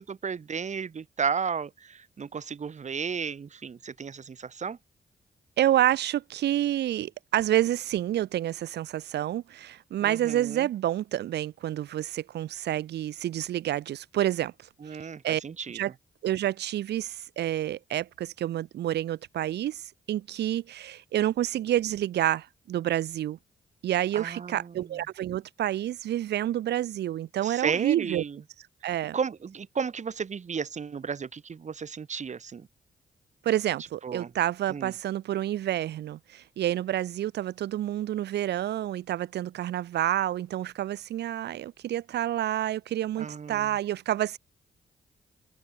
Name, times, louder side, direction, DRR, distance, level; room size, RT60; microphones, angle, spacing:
voice 1, 0.1-4.8 10.0-10.7 14.8-15.8 24.1-24.9 27.4-28.4 29.1-32.7 34.0-34.3 34.7-34.9 43.2-43.7, right 6 dB, 45° right, 0.8 m, -33 dB
voice 2, 5.6-14.5 15.2-15.4 15.7-15.9 16.2-23.4 23.8-28.2 28.8-29.2 33.4-44.4, right 12 dB, 80° right, 0.6 m, -28 dB
cardioid pair, 55°, 17 cm